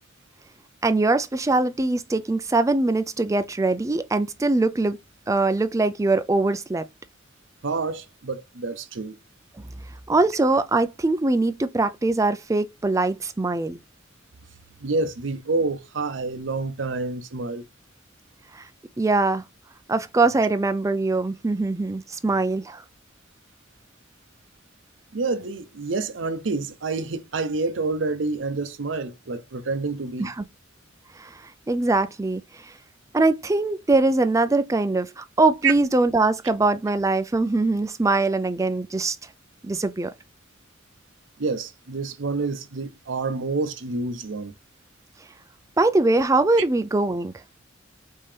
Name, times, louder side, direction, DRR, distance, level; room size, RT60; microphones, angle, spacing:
voice 1, 0.8-5.0 5.3-6.9 10.1-13.8 18.5-18.6 19.0-19.4 19.9-22.8 30.2-30.4 31.2-31.3 31.7-32.4 33.1-39.2 39.6-40.1 45.8-47.3, right 2 dB, 15° right, 0.4 m, -22 dB
voice 2, 7.6-9.2 14.8-17.7 25.1-30.3 35.6-35.7 41.4-44.5, right 3 dB, 75° right, 0.7 m, -28 dB
5.4 x 2.8 x 3.3 m
head